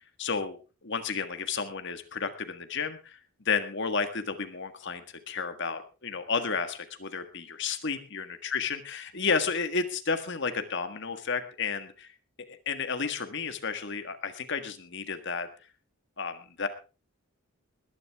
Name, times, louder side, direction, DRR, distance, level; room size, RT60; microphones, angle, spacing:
voice 1, 0.0-3.2 3.5-12.1 12.5-15.5 16.2-16.7, left 5 dB, 55° left, 8 dB, 1.6 m, -32 dB
21.0 x 11.0 x 3.6 m, 0.33 s
head